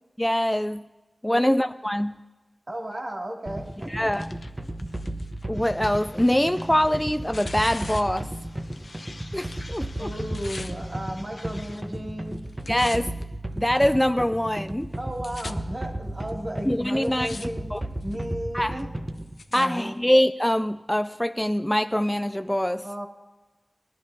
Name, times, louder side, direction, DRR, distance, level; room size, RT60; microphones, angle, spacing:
voice 1, 0.2-0.9 1.2-2.2 3.9-4.3 5.5-8.3 9.3-10.1 12.7-13.1 13.6-14.9 16.7-17.3 17.7-17.8 18.5-18.8 19.5-22.9, equal, 10° left, 11 dB, 0.3 m, -24 dB
voice 2, 2.7-4.1 10.0-12.4 15.0-17.7 18.0-18.9 19.5-20.0 22.8-23.1, equal, 50° right, -1 dB, 2.5 m, -34 dB
sound 1, 3.5-19.4, right 1 dB, 30° right, 0.9 m, -34 dB
Tearing, 3.7-9.1 9.4-10.7 11.5-12.0 12.3-13.2 13.9-14.0 14.7-14.8 15.0-15.5 16.3-16.4 16.9-17.5 17.8-18.2 18.8-19.7 20.4-20.5, left 3 dB, 85° left, 0.5 m, -43 dB
sound 2, 5.5-11.8, left 2 dB, 65° left, 1.3 m, -49 dB
19.5 x 11.0 x 2.7 m, 1.1 s
wide cardioid pair, 45°, 0 cm